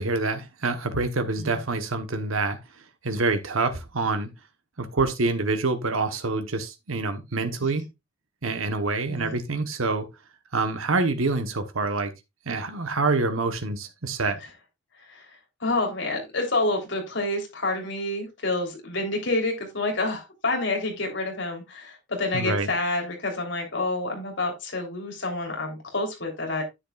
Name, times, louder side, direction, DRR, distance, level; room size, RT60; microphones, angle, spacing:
voice 1, 0.0-2.6 3.0-4.3 4.8-7.8 8.4-10.1 10.5-12.1 12.5-14.4 22.3-22.7, right 3 dB, 85° right, 1.1 m, -26 dB
voice 2, 15.6-26.6, left 2 dB, 60° left, 3.3 m, -28 dB
10.0 x 8.1 x 2.4 m
head